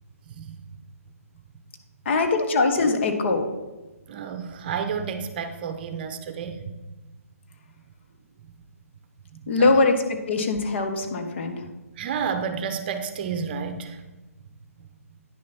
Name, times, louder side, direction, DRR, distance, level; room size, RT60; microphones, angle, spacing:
voice 1, 2.0-3.4 9.5-11.6, left 3 dB, 50° left, 5 dB, 1.3 m, -22 dB
voice 2, 4.1-6.6 9.4-9.9 12.0-14.0, right 6 dB, 40° right, 8 dB, 0.8 m, -31 dB
9.6 x 6.3 x 4.2 m, 1.1 s
figure-of-eight pair, 140°, 8 cm